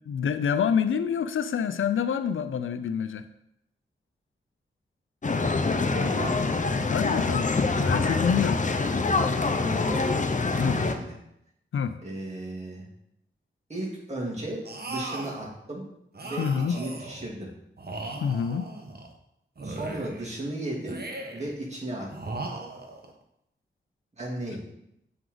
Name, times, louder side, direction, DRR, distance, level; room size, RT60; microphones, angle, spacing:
voice 1, 0.1-3.2 6.9-7.5 7.8-8.6 10.6-10.8 11.7-11.9 16.4-16.8 18.2-18.7, left 7 dB, 85° left, 11 dB, 0.5 m, -26 dB
sound 1, 5.2-10.9, left 3 dB, 40° left, 0.7 m, -25 dB
voice 2, 5.9-6.4 9.6-10.1 10.8-11.1 12.0-12.9 13.7-15.8 16.2-17.5 19.6-21.0 21.3-22.3 24.2-24.6, right 1 dB, 35° right, -4 dB, 2.6 m, -35 dB
sound 2, 14.6-15.4 16.1-17.3 17.8-19.1 19.6-20.3 20.8-21.5 22.1-23.1, right 2 dB, 50° right, 1.1 m, -38 dB
7.9 x 4.7 x 3.9 m, 0.79 s
cardioid pair, 50°, 20 cm